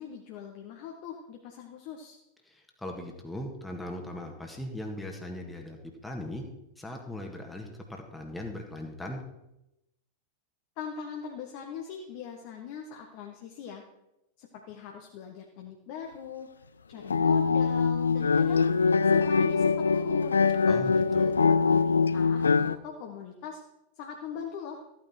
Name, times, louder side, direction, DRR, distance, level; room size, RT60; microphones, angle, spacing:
voice 1, 0.0-2.2 10.8-13.8 14.4-16.5 16.9-18.6 19.0-20.5 21.4-23.6 24.0-24.8, left 7 dB, 45° left, 2 dB, 1.4 m, -41 dB
voice 2, 2.5-5.8 6.0-6.4 6.8-9.2 20.7-21.4, left 1 dB, 5° left, 1 dB, 1.8 m, -39 dB
sound 1, 17.0-22.8, left 5 dB, 75° left, 0.4 m, -23 dB
14.0 x 9.4 x 4.4 m, 0.90 s
figure-of-eight pair, 90°, 0 cm